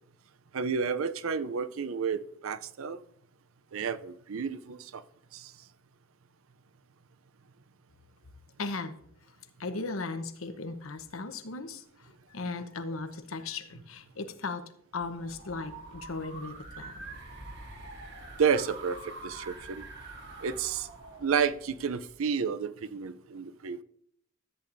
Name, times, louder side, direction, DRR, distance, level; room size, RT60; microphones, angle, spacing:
voice 1, 0.5-3.0 3.7-5.0 5.3-5.5 18.4-19.8 20.4-20.9 21.2-23.8, right 6 dB, 80° right, 14 dB, 0.5 m, -31 dB
voice 2, 8.6-9.0 9.6-17.1, left 3 dB, 85° left, 8 dB, 0.9 m, -37 dB
sound 1, 15.0-22.1, right 2 dB, 55° right, 2.0 m, -45 dB
13.5 x 8.4 x 2.6 m, 0.67 s
head